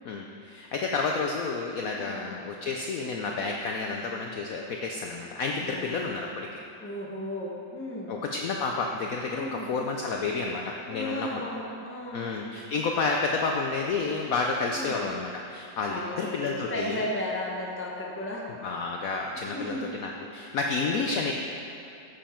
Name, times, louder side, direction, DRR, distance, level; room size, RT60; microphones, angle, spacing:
voice 1, 0.0-6.6 8.1-11.4 12.1-17.0 18.6-21.3, left 4 dB, 70° left, 1 dB, 0.8 m, -30 dB
voice 2, 1.8-2.2 5.6-6.1 6.8-8.2 9.3-9.7 10.9-12.3 14.7-14.9 15.9-18.4 19.4-19.9 20.8-21.0, left 1 dB, 10° left, -2 dB, 0.8 m, -35 dB
9.9 x 7.3 x 4.4 m, 2.7 s
omnidirectional pair, 1.9 m